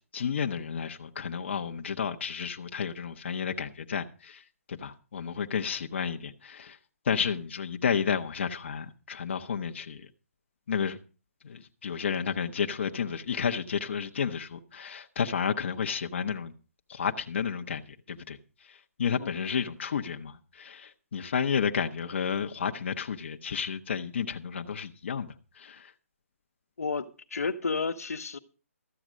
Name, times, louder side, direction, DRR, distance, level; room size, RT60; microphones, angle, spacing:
voice 1, 0.1-6.8 7.0-10.1 10.7-11.0 11.4-16.5 16.9-25.9, left 7 dB, 50° left, 1.0 m, -32 dB
voice 2, 19.2-19.6 26.8-28.4, left 4 dB, 80° left, 1.2 m, -32 dB
14.0 x 7.9 x 6.3 m
hypercardioid pair, 165°, 8 cm